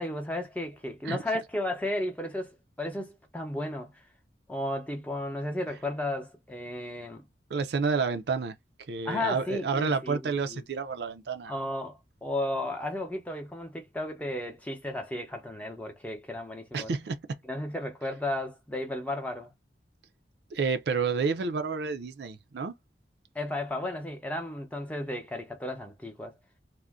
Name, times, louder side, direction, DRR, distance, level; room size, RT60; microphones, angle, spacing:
voice 1, 0.0-3.9 4.5-7.3 9.1-10.6 11.5-16.9 17.5-19.5 23.3-26.3, left 1 dB, 10° left, 0.6 m, -34 dB
voice 2, 7.5-8.6 8.9-11.6 16.7-17.2 20.5-22.8, right 5 dB, 70° right, 0.4 m, -30 dB
2.5 x 2.1 x 3.4 m
head